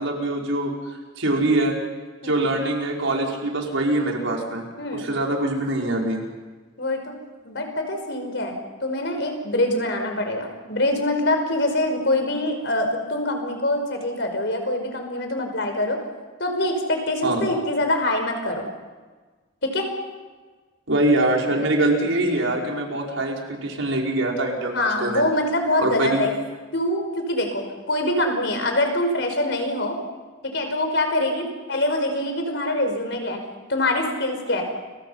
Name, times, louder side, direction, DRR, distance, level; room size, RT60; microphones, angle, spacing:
voice 1, 0.0-1.8 2.2-4.6 4.9-6.2 17.2-17.5 20.9-25.2 25.8-26.2, right 2 dB, 80° right, -1 dB, 5.3 m, -23 dB
voice 2, 4.8-5.1 6.8-7.1 7.5-16.0 16.4-18.7 19.6-19.9 24.7-26.3 26.7-29.9 30.4-33.4 33.7-34.6, left 1 dB, 60° left, 4 dB, 5.3 m, -24 dB
30.0 x 24.5 x 5.8 m, 1.3 s
head